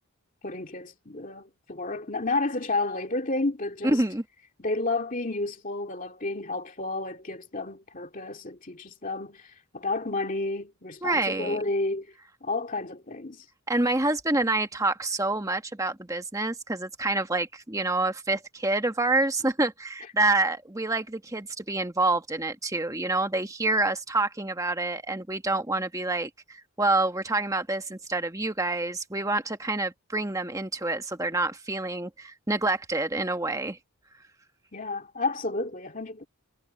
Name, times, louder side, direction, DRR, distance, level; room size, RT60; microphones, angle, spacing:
voice 1, 0.4-4.0 4.6-12.1 12.4-13.4 34.7-36.3, left 2 dB, 35° left, 2.4 m, -31 dB
voice 2, 3.8-4.2 11.0-11.6 13.7-33.8, right 2 dB, 15° right, 1.3 m, -27 dB
head